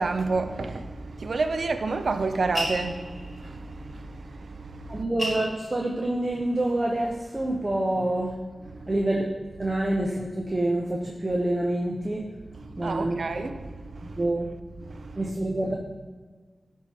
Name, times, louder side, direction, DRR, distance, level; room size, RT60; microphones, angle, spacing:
voice 1, 0.0-5.0 8.7-8.9 12.6-14.2 14.8-15.2, right 3 dB, 75° right, 0.6 m, -30 dB
sound 1, 2.5-3.5 4.6-4.7 4.9-6.6 7.0-7.7, equal, 5° right, 2.3 m, -33 dB
voice 2, 4.9-8.4 8.9-9.3 9.6-12.2 12.8-13.2 14.2-14.5 15.2-15.7, right 1 dB, 35° right, 0.9 m, -27 dB
10.5 x 3.7 x 4.4 m
cardioid pair, 40°, 0 cm